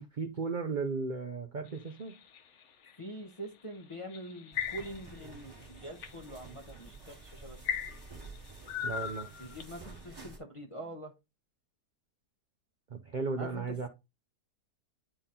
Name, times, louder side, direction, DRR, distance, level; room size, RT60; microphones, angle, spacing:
voice 1, 0.0-2.2 8.8-9.3 12.9-13.9, right 4 dB, 55° right, 0.5 m, -35 dB
sound 1, 1.7-2.9 3.9-5.2 5.6-6.1 6.8-7.0 7.6-9.8, left 8 dB, 60° left, 0.9 m, -37 dB
voice 2, 3.0-7.6 9.4-11.1 13.4-13.7, right 1 dB, 30° left, 0.6 m, -44 dB
sound 2, 4.5-10.4, right 3 dB, 15° right, 1.2 m, -50 dB
10.0 x 3.7 x 2.8 m
omnidirectional pair, 1.7 m